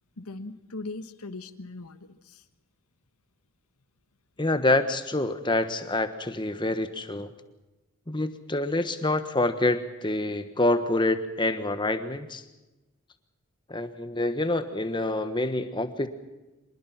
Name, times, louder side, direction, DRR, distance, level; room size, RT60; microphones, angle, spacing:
voice 1, 0.2-2.4, left 2 dB, 90° left, 11 dB, 1.3 m, -39 dB
voice 2, 4.4-7.3 8.1-12.4 13.7-16.1, left 2 dB, 20° left, 10 dB, 1.3 m, -27 dB
25.5 x 20.5 x 5.8 m, 1.1 s
head